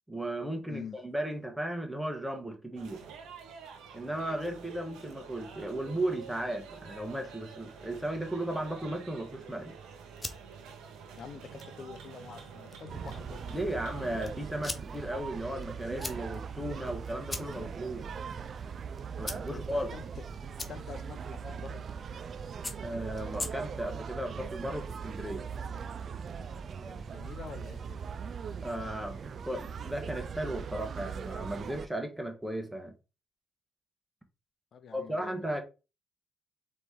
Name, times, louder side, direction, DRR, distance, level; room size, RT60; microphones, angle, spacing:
voice 1, 0.1-3.0 3.9-9.7 13.5-18.1 19.2-19.9 22.8-25.5 28.6-32.9 34.9-35.6, right 1 dB, 5° right, 1.3 m, -35 dB
sound 1, 2.7-14.6, right 6 dB, 85° right, 0.9 m, -48 dB
sound 2, 9.8-24.0, left 2 dB, 25° left, 0.8 m, -45 dB
voice 2, 11.2-13.6 17.5-17.7 19.5-20.0 20.7-21.8 26.9-28.0 34.7-35.6, left 6 dB, 60° left, 0.7 m, -46 dB
sound 3, 12.9-31.9, right 6 dB, 55° right, 0.3 m, -40 dB
4.0 x 3.2 x 3.7 m
cardioid pair, 70°, 0 cm